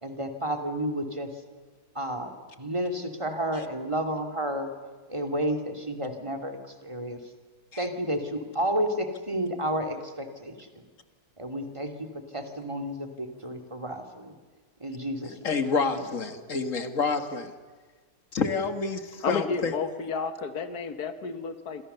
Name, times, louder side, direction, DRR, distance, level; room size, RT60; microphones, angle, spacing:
voice 1, 0.0-1.3 1.9-2.3 2.6-4.7 5.1-7.2 7.8-10.7 11.4-12.1 12.3-14.3 14.8-15.4 15.8-16.0, equal, 20° right, 5 dB, 2.7 m, -31 dB
voice 2, 15.4-17.5 18.3-19.7, left 4 dB, 55° left, 9 dB, 2.1 m, -28 dB
voice 3, 19.2-21.8, left 5 dB, 85° left, 10 dB, 1.9 m, -31 dB
28.0 x 26.5 x 6.9 m, 1.4 s
omnidirectional pair, 1.6 m